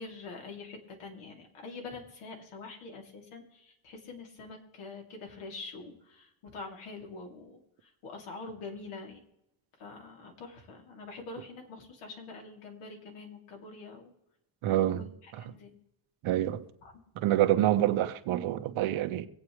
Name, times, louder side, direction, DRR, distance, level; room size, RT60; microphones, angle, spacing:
voice 1, 0.0-9.2 9.8-14.1 15.0-15.7 16.3-16.9, left 3 dB, 85° left, 3.3 m, -45 dB
voice 2, 14.6-15.1 16.2-16.6 17.2-19.3, right 13 dB, 75° right, 1.3 m, -27 dB
25.0 x 8.6 x 3.3 m
cardioid pair, 120°, 49 cm